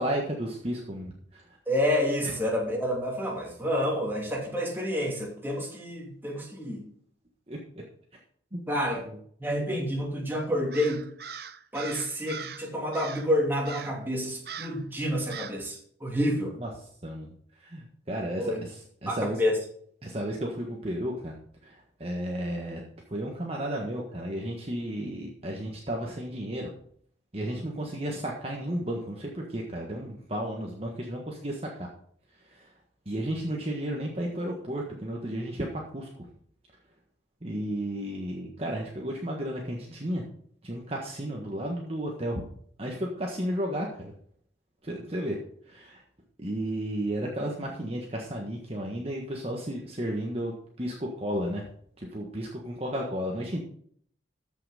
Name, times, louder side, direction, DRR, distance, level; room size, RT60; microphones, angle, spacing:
voice 1, 0.0-1.4 7.5-7.6 8.5-8.6 9.1-9.2 16.6-16.7 17.0-17.3 17.6-19.4 20.0-21.3 21.6-22.8 23.1-26.7 27.3-31.9 32.4-32.7 33.0-36.3 37.4-40.2 40.6-42.5 42.8-44.1 44.8-45.4 45.7-46.0 46.4-51.7 52.0-53.6, right 1 dB, 35° right, -1 dB, 1.5 m, -33 dB
voice 2, 1.7-6.9 8.7-9.0 9.4-11.1 11.7-16.6 18.4-18.6 19.1-19.6, equal, 10° right, -2 dB, 2.7 m, -29 dB
Crow, 10.7-12.6 12.9-13.3 13.6-14.0 14.4-14.8 15.3-15.6, right 7 dB, 55° right, 0.7 m, -41 dB
14.0 x 5.9 x 5.1 m, 0.62 s
head